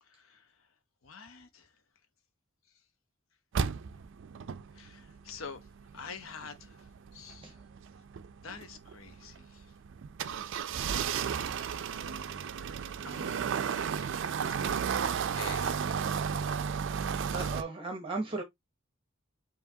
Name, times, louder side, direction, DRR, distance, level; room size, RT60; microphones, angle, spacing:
voice 1, 0.0-0.7 1.0-1.8 2.7-2.8 4.7-5.7 5.9-7.6 8.4-9.7 11.1-11.6 12.3-12.5 13.0-14.3 14.7-16.3, left 5 dB, 75° left, 0.8 m, -48 dB
sound 1, 3.5-17.6, right 7 dB, 60° right, 0.4 m, -34 dB
voice 2, 17.3-18.4, right 3 dB, 25° right, 0.8 m, -36 dB
4.7 x 2.9 x 2.7 m
head